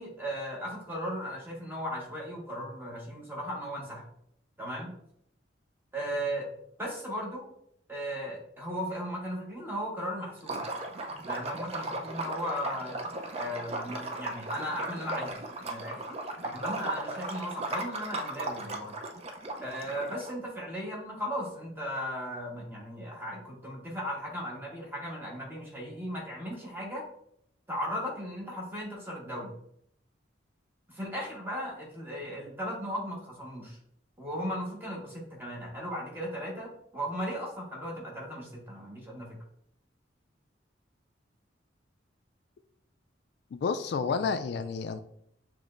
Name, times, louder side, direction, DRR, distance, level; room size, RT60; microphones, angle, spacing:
voice 1, 0.0-4.1 4.6-4.9 5.9-6.5 6.8-7.5 7.9-10.6 11.2-13.0 13.3-16.0 16.4-18.9 19.6-27.0 27.7-29.5 30.9-33.8 34.2-39.4 44.1-44.2, equal, 10° right, -3 dB, 1.3 m, -36 dB
Liquid, 10.4-20.3, right 2 dB, 35° right, 0.5 m, -37 dB
voice 2, 43.5-45.0, left 5 dB, 60° left, 9 dB, 0.3 m, -30 dB
6.8 x 3.1 x 2.5 m, 0.70 s
head